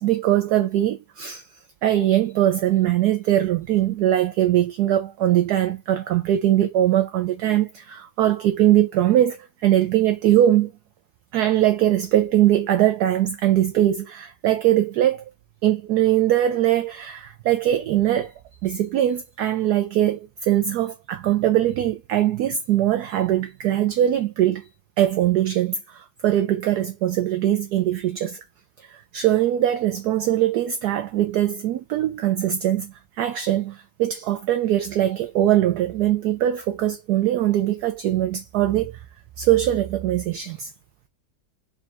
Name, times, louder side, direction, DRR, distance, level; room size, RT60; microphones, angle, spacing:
voice 1, 0.0-1.4 1.8-10.7 11.3-15.3 15.6-18.3 18.6-24.6 25.0-28.4 28.8-38.9 39.4-40.7, right 12 dB, 70° right, 1.0 m, -21 dB
4.2 x 2.4 x 4.3 m
omnidirectional pair, 2.1 m